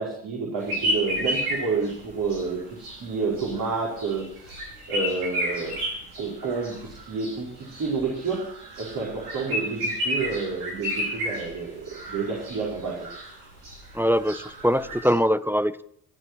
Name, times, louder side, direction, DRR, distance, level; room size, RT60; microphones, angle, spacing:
voice 1, 0.0-4.5 4.9-5.8 6.2-8.4 8.8-13.1, right 4 dB, 45° right, -4 dB, 5.1 m, -29 dB
sound 1, 0.6-15.1, equal, 85° right, 5.6 m, -32 dB
voice 2, 13.9-15.8, equal, 5° right, 14 dB, 0.5 m, -23 dB
15.0 x 9.6 x 6.1 m, 0.65 s
hypercardioid pair, 50°, 45 cm